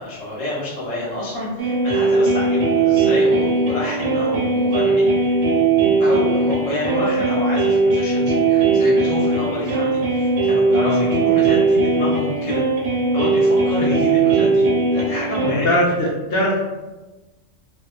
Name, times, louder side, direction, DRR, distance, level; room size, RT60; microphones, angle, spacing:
voice 1, 0.0-5.4 6.0-12.6 13.1-15.8, left 1 dB, 85° left, -7 dB, 1.3 m, -28 dB
sound 1, 1.6-15.5, right 3 dB, 70° right, 0.9 m, -18 dB
voice 2, 15.5-16.6, equal, 60° left, -3 dB, 0.7 m, -21 dB
2.5 x 2.2 x 2.2 m, 1.1 s
omnidirectional pair, 1.3 m